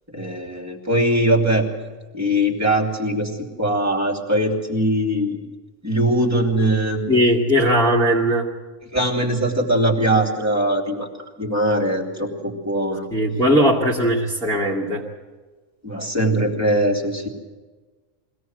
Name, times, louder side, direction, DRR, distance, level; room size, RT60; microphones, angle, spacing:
voice 1, 0.1-1.7 2.1-5.4 5.8-7.1 8.9-11.1 11.4-13.1 15.8-17.3, right 1 dB, 10° right, 0 dB, 2.9 m, -21 dB
voice 2, 7.1-8.5 13.1-15.0, equal, 5° left, -5 dB, 2.1 m, -18 dB
23.5 x 17.5 x 7.8 m, 1.3 s
omnidirectional pair, 1.3 m